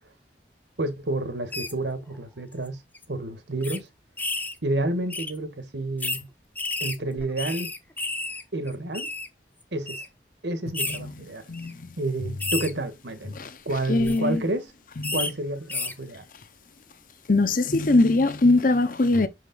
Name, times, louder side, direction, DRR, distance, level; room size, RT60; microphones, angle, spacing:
voice 1, 0.8-2.8 3.1-3.9 4.6-6.3 6.8-7.7 8.5-9.1 9.7-10.0 10.4-11.4 12.0-13.4 13.6-14.7 15.1-16.2, right 2 dB, 85° right, 1.5 m, -30 dB
sound 1, 1.5-1.7 2.5-2.7 2.9-3.0 3.6-3.8 4.2-4.6 5.1-5.3 6.0-6.2 6.6-8.4 8.7-9.3 9.9-10.1 10.7-11.0 11.5-11.7 12.4-12.7 13.9-14.2 15.0-15.3 15.7-15.9, left 3 dB, 10° left, 0.7 m, -31 dB
voice 2, 13.9-14.4 15.0-15.2 17.3-19.3, left 2 dB, 50° left, 0.8 m, -21 dB
6.2 x 5.1 x 3.8 m
head